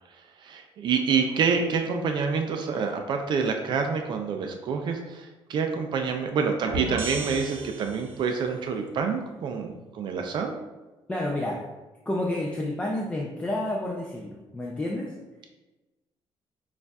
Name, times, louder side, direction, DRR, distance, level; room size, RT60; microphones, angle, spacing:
voice 1, 0.4-10.5, right 5 dB, 55° right, 4 dB, 0.4 m, -27 dB
sound 1, 6.7-8.4, right 2 dB, 80° right, 0.7 m, -34 dB
voice 2, 11.1-11.6 12.1-15.1, left 1 dB, 15° left, -2 dB, 0.4 m, -30 dB
6.5 x 2.4 x 2.3 m, 1.1 s
cardioid pair, 150°, 9 cm